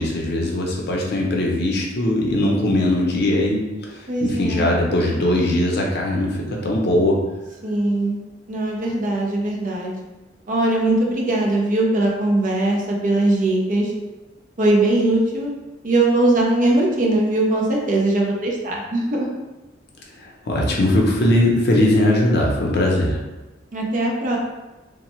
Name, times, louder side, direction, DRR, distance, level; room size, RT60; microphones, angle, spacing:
voice 1, 0.0-3.6 3.9-7.2 20.2-23.2, left 1 dB, 60° left, -2 dB, 0.6 m, -20 dB
voice 2, 4.1-4.8 7.6-8.2 8.5-10.0 10.5-13.9 14.6-15.5 15.8-19.3 23.7-24.4, right 2 dB, 45° right, -1 dB, 0.5 m, -20 dB
3.1 x 2.1 x 3.0 m, 1.1 s
head